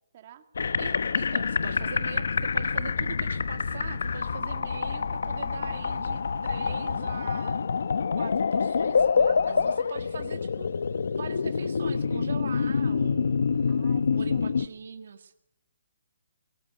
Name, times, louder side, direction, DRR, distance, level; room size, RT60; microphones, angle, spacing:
voice 1, 0.1-0.4 13.7-14.4, right 10 dB, 30° right, 8 dB, 2.3 m, -50 dB
sound 1, 0.5-14.7, left 5 dB, 70° left, 0.9 m, -27 dB
voice 2, 0.8-7.6 8.2-10.7 11.2-13.7 14.2-15.3, right 6 dB, 55° right, 6 dB, 1.8 m, -42 dB
24.0 x 17.0 x 9.7 m, 0.78 s
hypercardioid pair, 170°, 0 cm